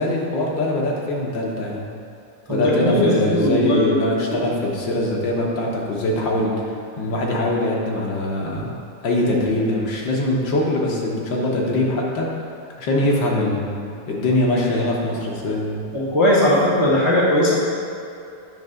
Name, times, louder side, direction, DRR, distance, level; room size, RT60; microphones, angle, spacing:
voice 1, 0.0-1.9 2.5-8.7 9.0-12.3 12.8-15.8, left 1 dB, 75° left, -2 dB, 1.8 m, -22 dB
voice 2, 2.5-4.4 15.9-17.5, left 1 dB, 15° right, -6 dB, 0.8 m, -19 dB
9.3 x 3.3 x 6.3 m, 2.5 s
omnidirectional pair, 2.1 m